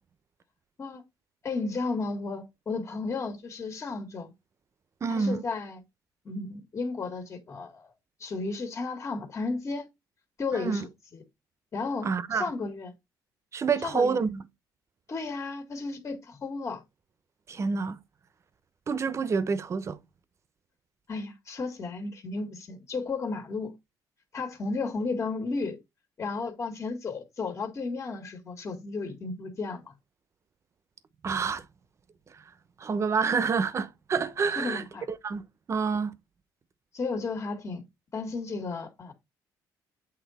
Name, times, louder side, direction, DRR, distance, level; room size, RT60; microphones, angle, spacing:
voice 1, 1.4-4.3 5.1-5.8 6.3-7.9 8.2-9.9 10.4-10.9 11.7-12.9 13.8-14.2 15.1-16.8 21.1-23.7 24.3-25.8 26.2-29.9 34.6-35.1 36.9-37.8 38.1-39.1, left 3 dB, 35° left, 1.9 m, -33 dB
voice 2, 5.0-5.4 10.5-10.9 12.0-12.5 13.5-14.4 17.5-18.0 18.9-20.0 31.2-31.6 32.8-35.4 35.7-36.1, right 5 dB, 35° right, 0.9 m, -28 dB
8.3 x 3.8 x 4.2 m
cardioid pair, 110°, 8 cm